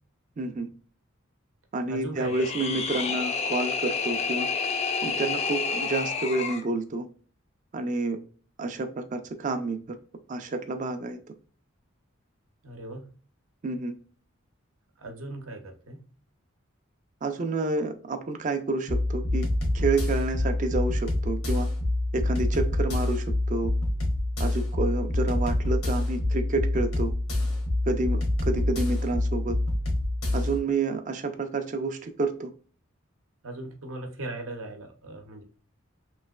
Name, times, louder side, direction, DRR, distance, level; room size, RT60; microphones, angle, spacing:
voice 1, 0.4-0.7 1.7-4.5 5.0-7.1 7.7-8.2 8.6-9.8 10.3-11.2 13.6-13.9 17.2-19.4 19.7-21.7 22.1-23.7 24.4-27.1 27.9-29.6 30.3-32.5, right 2 dB, 40° right, 7 dB, 0.4 m, -29 dB
voice 2, 1.9-2.5 12.6-13.1 15.0-16.0 33.4-35.4, right 2 dB, 75° right, 4 dB, 0.8 m, -38 dB
sound 1, 2.2-6.7, left 5 dB, 30° left, 0.4 m, -29 dB
sound 2, 18.9-30.6, left 1 dB, 85° left, 1.1 m, -26 dB
3.1 x 2.8 x 2.3 m, 0.41 s
head